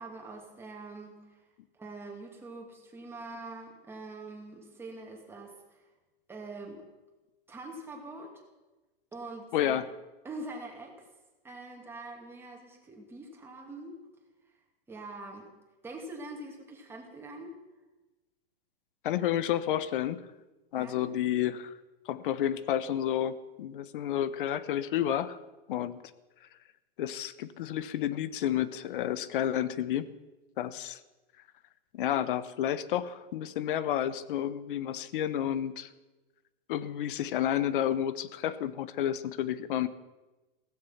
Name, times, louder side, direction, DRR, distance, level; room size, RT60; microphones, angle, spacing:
voice 1, 0.0-1.5 1.7-5.9 6.3-6.8 7.5-8.3 9.1-9.8 10.2-11.1 11.4-14.0 14.9-15.5 15.8-17.5 20.7-21.1, right 2 dB, 10° right, 0 dB, 2.4 m, -44 dB
voice 2, 9.5-9.8 19.0-20.2 20.7-21.7 22.1-25.4 25.7-26.0 27.0-30.1 30.6-31.0 31.9-35.9 36.7-39.9, left 11 dB, 60° left, 16 dB, 1.0 m, -30 dB
16.0 x 15.5 x 5.7 m, 1.1 s
supercardioid pair, 160°, 30 cm